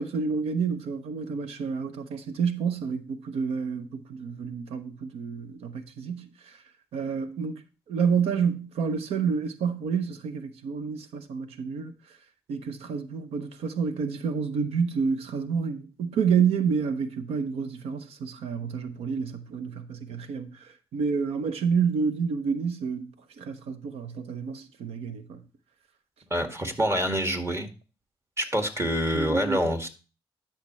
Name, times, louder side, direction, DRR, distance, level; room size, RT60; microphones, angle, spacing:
voice 1, 0.0-6.6 6.9-7.5 7.9-11.9 12.5-25.4 29.1-29.6, right 6 dB, 80° right, 0.8 m, -29 dB
voice 2, 26.3-27.7 28.4-29.9, equal, 25° right, 2.1 m, -26 dB
11.5 x 5.9 x 3.1 m
supercardioid pair, 45°, 10 cm